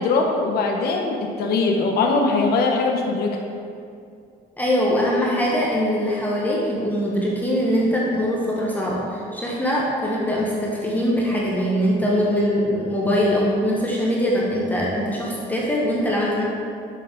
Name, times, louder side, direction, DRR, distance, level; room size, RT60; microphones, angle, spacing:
voice 1, 0.0-3.4, left 3 dB, 70° left, 2 dB, 0.8 m, -21 dB
voice 2, 4.6-16.4, equal, 10° left, -5 dB, 1.0 m, -22 dB
6.6 x 5.3 x 3.8 m, 2.4 s
cardioid pair, 110°, 17 cm